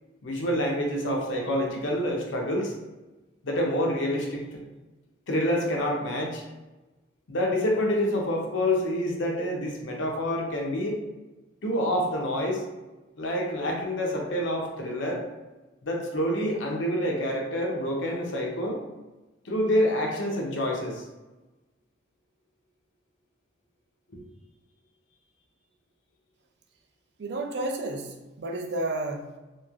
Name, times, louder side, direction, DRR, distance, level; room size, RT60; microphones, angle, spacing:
voice 1, 0.2-2.7 3.4-4.6 5.3-6.4 7.3-11.0 11.6-12.7 13.2-15.2 15.8-18.8 19.4-21.0, equal, 80° left, 0 dB, 0.6 m, -27 dB
voice 2, 27.2-29.4, right 2 dB, 60° right, 3 dB, 0.4 m, -31 dB
3.0 x 2.5 x 2.4 m, 1.1 s
head